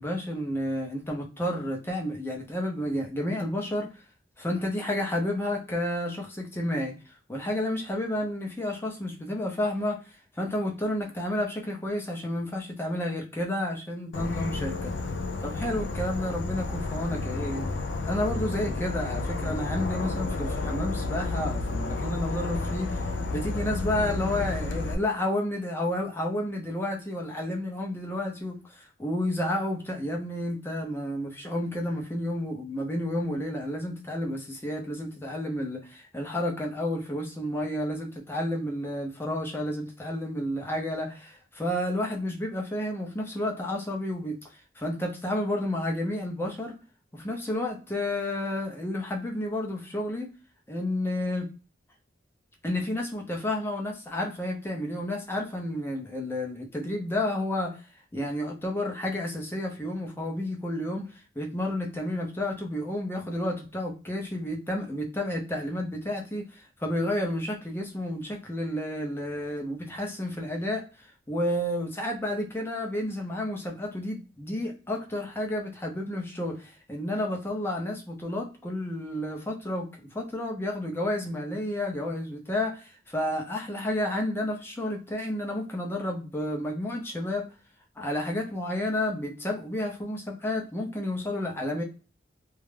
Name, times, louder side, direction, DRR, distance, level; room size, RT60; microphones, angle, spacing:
voice 1, 0.0-4.0 4.4-14.9 15.4-17.6 18.0-23.0 23.3-44.4 44.8-46.7 47.1-50.3 50.7-51.5 52.6-57.8 58.1-87.5 88.0-91.8, left 1 dB, 15° left, 1 dB, 0.5 m, -31 dB
Insect / Frog, 14.1-24.9, left 3 dB, 70° left, 0.3 m, -31 dB
2.2 x 2.0 x 3.1 m, 0.35 s
head